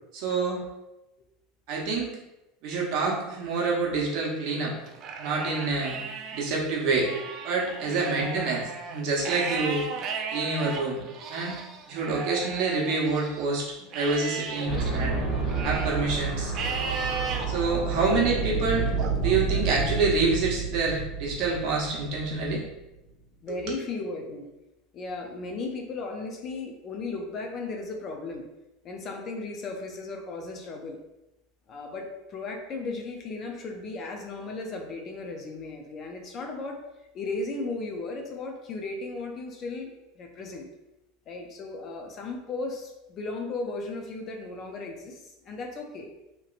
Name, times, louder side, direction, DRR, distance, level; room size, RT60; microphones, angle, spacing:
voice 1, 0.1-0.6 1.7-2.1 2.6-4.7 5.2-6.0 6.3-7.1 7.4-9.8 10.3-11.0 11.3-11.5 11.9-13.7 13.9-15.2 15.6-16.5 17.5-18.9 19.2-22.6 23.5-23.6, right 3 dB, 60° right, -3 dB, 0.9 m, -27 dB
Livestock farm animals working animals, 4.9-6.5 6.9-13.5 13.9-16.0 16.5-17.5 18.0-18.4 19.0-20.1, right 5 dB, 40° right, 0.4 m, -36 dB
voice 2, 7.9-8.3 9.5-9.8 14.6-14.8 17.9-18.2 23.4-24.5 24.9-28.5 28.8-31.0 31.7-36.8 37.1-40.7 41.3-46.1, left 3 dB, 35° left, 3 dB, 0.5 m, -36 dB
sound 1, 14.7-22.7, right 4 dB, 65° left, 1.0 m, -30 dB
2.9 x 2.9 x 2.5 m, 0.94 s
supercardioid pair, 140°, 0 cm